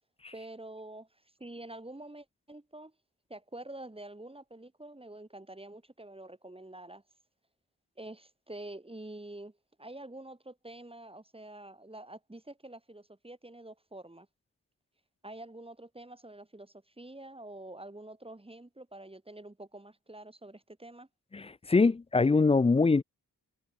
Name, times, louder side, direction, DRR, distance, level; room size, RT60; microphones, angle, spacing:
voice 1, 0.3-1.1 1.4-2.9 3.3-7.0 8.0-14.3 15.2-21.1, right 1 dB, 15° right, 1.5 m, -47 dB
voice 2, 21.3-23.0, left 4 dB, 20° left, 0.4 m, -24 dB
cardioid pair, 55°, 35 cm